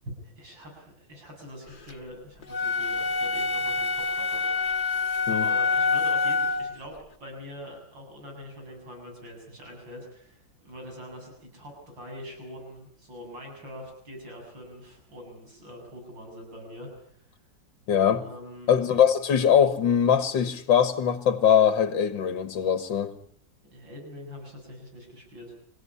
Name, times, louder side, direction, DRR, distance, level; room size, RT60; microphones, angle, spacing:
voice 1, 0.0-4.5 5.3-17.3 18.2-18.7 23.7-25.5, equal, 85° right, 9.0 m, -44 dB
sound 1, 2.5-6.8, left 4 dB, 30° left, 1.5 m, -26 dB
voice 2, 17.9-18.2 18.7-23.1, left 8 dB, 90° left, 2.1 m, -22 dB
27.5 x 16.0 x 9.8 m
omnidirectional pair, 2.0 m